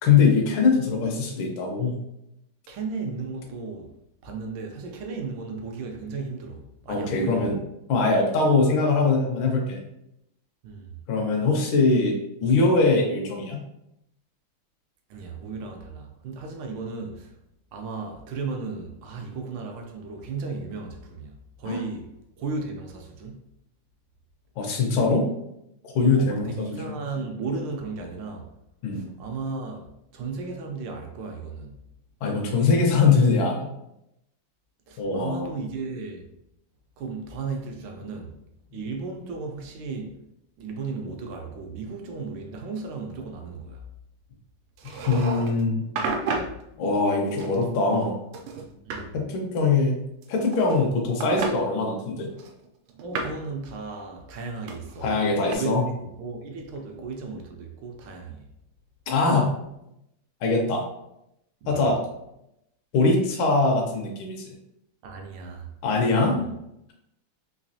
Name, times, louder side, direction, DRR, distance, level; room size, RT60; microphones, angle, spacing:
voice 1, 0.0-1.9 6.9-7.5 7.9-9.8 11.1-12.1 12.4-13.6 21.7-21.8 24.6-25.3 25.8-26.9 28.8-29.1 32.2-33.7 35.0-35.5 44.8-45.9 46.8-48.1 49.1-50.0 50.3-52.3 55.0-55.8 59.1-59.5 60.4-60.8 61.7-62.0 62.9-64.4 65.8-66.5, left 4 dB, 70° left, 1.4 m, -22 dB
voice 2, 2.7-3.9 4.2-7.6 10.6-10.9 15.1-17.3 17.7-22.1 22.4-23.4 26.1-28.5 28.9-31.8 34.9-36.3 37.0-38.4 38.7-40.2 40.6-43.8 48.9-49.1 53.0-58.5 61.6-61.9 65.0-65.7 66.0-66.4, right 4 dB, 75° right, 1.1 m, -35 dB
sound 1, 44.8-45.6 46.0-46.6 47.4-48.1 48.3-49.1 50.2-50.9 51.2-51.6 52.4-53.5 54.7-55.6, right 3 dB, 90° right, 1.5 m, -32 dB
4.0 x 2.7 x 2.6 m
omnidirectional pair, 2.4 m